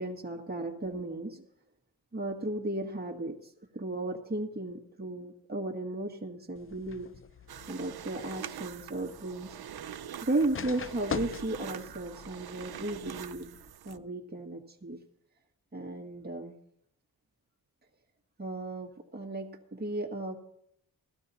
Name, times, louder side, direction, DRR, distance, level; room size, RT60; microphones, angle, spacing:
voice 1, 0.0-1.5 2.1-7.1 7.7-9.6 10.2-13.5 13.9-15.0 15.7-16.5 18.4-20.4, right 2 dB, 25° right, 1 dB, 1.7 m, -35 dB
sound 1, 6.6-13.7, left 6 dB, 35° left, 0.5 m, -44 dB
sound 2, 7.5-14.0, right 10 dB, 75° right, 0.6 m, -44 dB
16.5 x 12.5 x 4.1 m, 0.73 s
wide cardioid pair, 90°, 38 cm